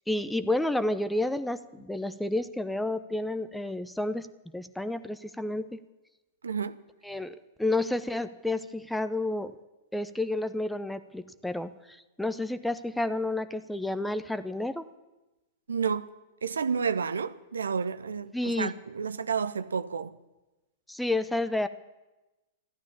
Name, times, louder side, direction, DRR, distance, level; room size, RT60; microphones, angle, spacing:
voice 1, 0.1-4.3 4.5-5.8 7.0-9.5 9.9-14.9 18.3-18.7 20.9-21.7, left 2 dB, 5° left, 0.7 m, -30 dB
voice 2, 6.4-6.8 15.7-16.1 16.4-20.1, right 6 dB, 75° right, 0.5 m, -30 dB
14.5 x 12.5 x 7.1 m
figure-of-eight pair, 100°, 0 cm